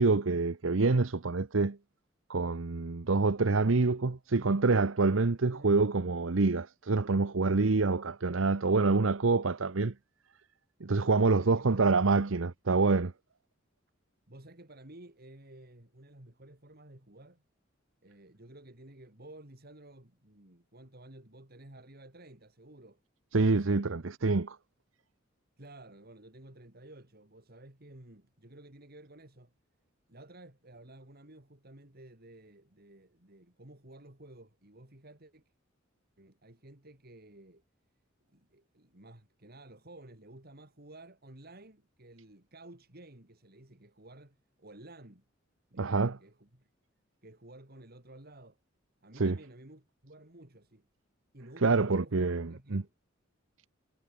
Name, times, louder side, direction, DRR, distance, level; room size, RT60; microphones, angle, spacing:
voice 1, 0.0-1.8 2.3-9.9 10.8-13.1 23.3-24.6 45.8-46.2 49.2-49.4 51.6-52.8, right 3 dB, 75° right, 0.9 m, -26 dB
voice 2, 11.2-12.0 14.3-17.4 18.0-23.0 23.4-23.9 25.6-29.5 30.1-35.4 36.2-37.6 38.3-45.2 45.7-46.7 47.2-48.6 49.0-50.9 51.3-52.9, right 1 dB, 50° right, 3.6 m, -53 dB
head